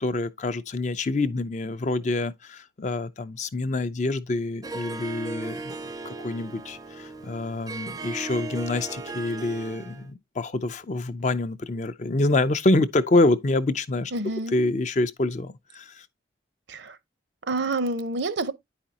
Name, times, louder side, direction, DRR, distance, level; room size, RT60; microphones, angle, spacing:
voice 1, 0.0-5.8 6.0-14.1 14.5-16.1, left 2 dB, 40° left, 0.5 m, -26 dB
Harp, 4.6-10.1, right 3 dB, 20° right, 0.5 m, -37 dB
voice 2, 14.1-14.6 16.7-17.0 17.5-18.5, right 2 dB, 65° right, 0.7 m, -28 dB
9.3 x 5.0 x 2.8 m
head